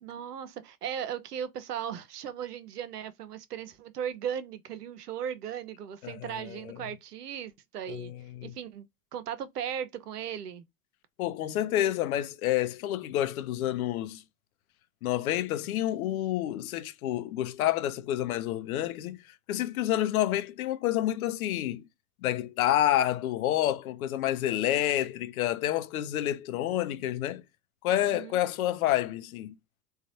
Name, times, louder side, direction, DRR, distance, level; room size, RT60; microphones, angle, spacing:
voice 1, 0.0-8.1 8.4-8.9 9.1-10.6 28.0-28.4, right 9 dB, 75° right, 0.7 m, -37 dB
voice 2, 6.0-6.8 7.9-8.5 11.2-14.2 15.0-19.2 19.5-21.8 22.2-27.4 27.8-29.6, left 13 dB, 65° left, 0.6 m, -29 dB
4.0 x 2.3 x 2.6 m
figure-of-eight pair, 75°, 47 cm